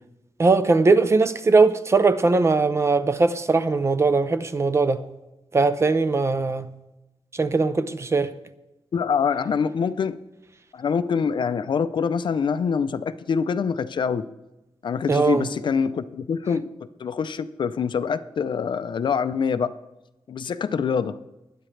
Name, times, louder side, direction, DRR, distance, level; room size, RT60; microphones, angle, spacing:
voice 1, 0.4-5.0 5.5-6.7 7.3-8.3 15.1-15.4, right 3 dB, 30° right, 0.6 m, -20 dB
voice 2, 8.9-10.2 10.7-14.3 14.8-16.7 17.0-19.7 20.3-21.2, left 6 dB, 55° left, 0.5 m, -25 dB
20.0 x 10.0 x 3.3 m
wide cardioid pair, 165°, 10 cm